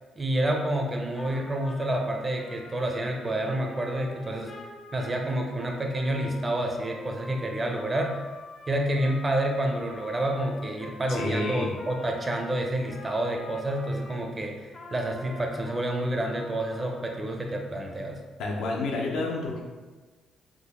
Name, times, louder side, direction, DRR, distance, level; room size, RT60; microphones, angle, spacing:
voice 1, 0.2-4.5 4.9-8.2 8.7-18.2, right 1 dB, 25° right, 2 dB, 0.5 m, -29 dB
Trumpet, 1.2-14.3 14.7-17.2, left 2 dB, 40° left, 0.5 m, -45 dB
voice 2, 11.1-11.7 18.4-19.6, left 2 dB, 85° left, -1 dB, 0.6 m, -29 dB
3.7 x 2.0 x 3.5 m, 1.3 s
cardioid pair, 90°, 0 cm